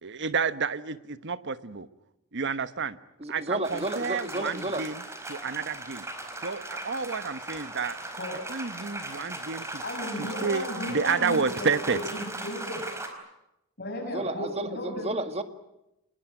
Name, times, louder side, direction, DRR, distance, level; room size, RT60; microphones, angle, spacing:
voice 1, 0.0-1.9 2.3-3.0 3.3-6.1 6.4-8.0 8.5-9.8 10.2-12.0, right 5 dB, 55° right, 13 dB, 1.2 m, -30 dB
voice 2, 3.2-4.8 14.1-15.4, right 2 dB, 30° right, 9 dB, 2.0 m, -32 dB
sound 1, 3.6-13.1, right 2 dB, 15° right, 4.6 m, -38 dB
voice 3, 9.8-12.8 13.8-15.1, left 1 dB, 50° left, 0 dB, 6.8 m, -35 dB
27.5 x 20.5 x 9.1 m, 0.89 s
head